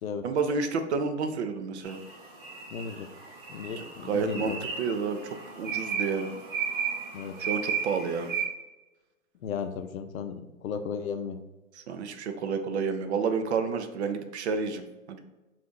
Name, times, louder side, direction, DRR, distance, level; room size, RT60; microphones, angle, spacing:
voice 1, 0.2-2.0 3.8-6.3 7.4-8.3 11.7-15.3, right 5 dB, 55° right, 8 dB, 0.5 m, -30 dB
sound 1, 1.8-8.4, right 6 dB, 40° right, 0.8 m, -35 dB
voice 2, 2.7-3.1 3.5-4.6 7.1-7.4 9.4-11.4, left 6 dB, 90° left, 8 dB, 0.5 m, -35 dB
2.6 x 2.4 x 3.6 m, 1.1 s
hypercardioid pair, 140°, 40 cm